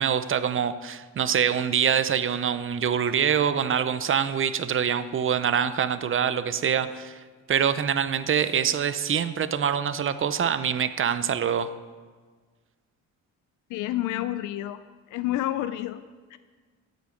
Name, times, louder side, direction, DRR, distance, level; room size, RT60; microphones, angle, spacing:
voice 1, 0.0-7.2 7.5-11.7, right 8 dB, 45° right, 12 dB, 0.7 m, -25 dB
voice 2, 13.7-14.8 15.1-16.0 16.3-16.4, left 14 dB, 90° left, 13 dB, 0.5 m, -29 dB
12.5 x 8.2 x 5.2 m, 1.5 s
cardioid pair, 90°, 30 cm